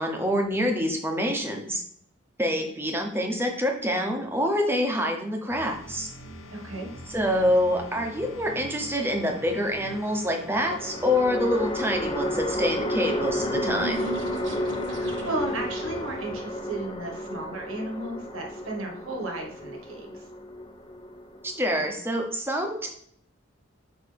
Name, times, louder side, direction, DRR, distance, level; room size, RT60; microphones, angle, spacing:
voice 1, 0.0-1.8 2.4-6.1 7.1-14.1 21.4-22.9, equal, 10° right, 3 dB, 0.8 m, -26 dB
sound 1, 5.5-16.5, left 1 dB, 85° left, 1.1 m, -43 dB
voice 2, 6.5-6.9 14.9-20.2, right 2 dB, 80° right, 1 dB, 1.5 m, -34 dB
sound 2, 7.4-8.3 10.6-21.9, left 1 dB, 20° left, 0.6 m, -32 dB
sound 3, 12.7-15.6, right 1 dB, 60° right, 0.9 m, -39 dB
6.5 x 4.8 x 3.4 m, 0.67 s
head